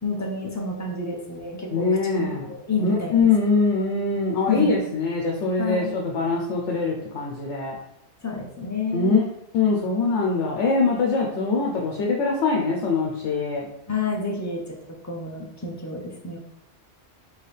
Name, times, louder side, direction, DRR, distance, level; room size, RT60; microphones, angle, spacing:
voice 1, 0.0-1.9 2.1-3.2 4.5-4.7 5.6-5.9 8.2-9.3 13.9-16.4, left 3 dB, 20° left, 0 dB, 0.5 m, -29 dB
voice 2, 1.7-2.4 2.8-7.7 8.9-9.2 9.5-13.7, left 4 dB, 80° left, -1 dB, 1.0 m, -23 dB
4.6 x 3.0 x 3.2 m, 0.79 s
omnidirectional pair, 1.2 m